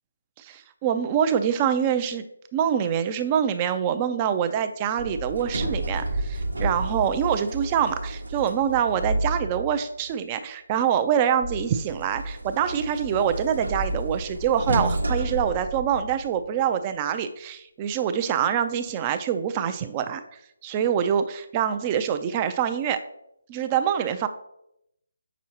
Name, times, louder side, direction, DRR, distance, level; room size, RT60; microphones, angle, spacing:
voice 1, 0.4-2.2 2.5-20.2 20.6-23.0 23.5-24.3, right 8 dB, 25° right, 10 dB, 0.5 m, -25 dB
Sliding door, 5.0-9.8 11.4-16.4, right 1 dB, 80° right, 1.0 m, -30 dB
7.6 x 6.0 x 2.9 m, 0.79 s
figure-of-eight pair, 155°, 0 cm